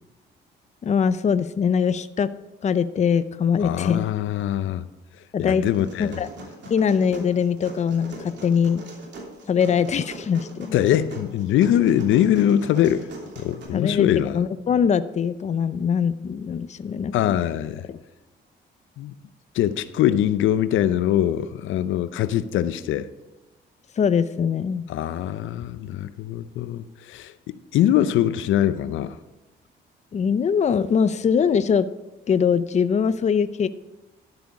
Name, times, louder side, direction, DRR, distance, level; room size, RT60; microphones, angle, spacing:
voice 1, 0.8-2.3 2.6-4.1 5.3-5.6 6.0-6.3 6.7-8.8 9.5-10.8 13.7-14.1 14.3-17.4 17.9-18.0 24.0-24.8 30.1-31.9 32.3-33.7, left 7 dB, 35° left, 13 dB, 0.5 m, -22 dB
voice 2, 3.6-4.8 5.4-6.2 10.7-13.1 13.4-14.4 17.1-17.9 19.0-19.1 19.5-23.1 24.9-29.2, left 11 dB, 80° left, 14 dB, 0.6 m, -22 dB
sound 1, 5.7-13.6, right 1 dB, 65° right, 3.0 m, -41 dB
12.0 x 7.8 x 4.7 m, 1.0 s
cardioid pair, 90°, 20 cm